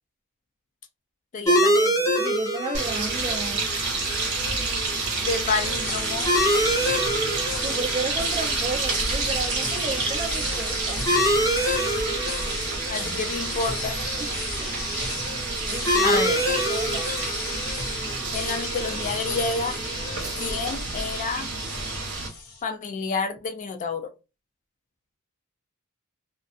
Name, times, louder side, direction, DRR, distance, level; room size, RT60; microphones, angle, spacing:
voice 1, 1.3-2.1 5.2-6.3 12.9-14.0 16.0-16.4 18.3-19.8 20.4-21.5 22.6-24.1, left 4 dB, 35° left, 0.3 m, -29 dB
sound 1, 1.5-20.6, equal, 15° left, 0.8 m, -28 dB
voice 2, 2.2-3.6 7.6-11.0 14.2-14.7 15.7-16.2 16.7-17.0, right 3 dB, 25° right, 0.6 m, -33 dB
sound 2, 2.7-22.3, right 3 dB, 55° right, 1.0 m, -29 dB
sound 3, 5.7-22.6, left 3 dB, 75° left, 0.9 m, -37 dB
2.5 x 2.3 x 2.4 m
head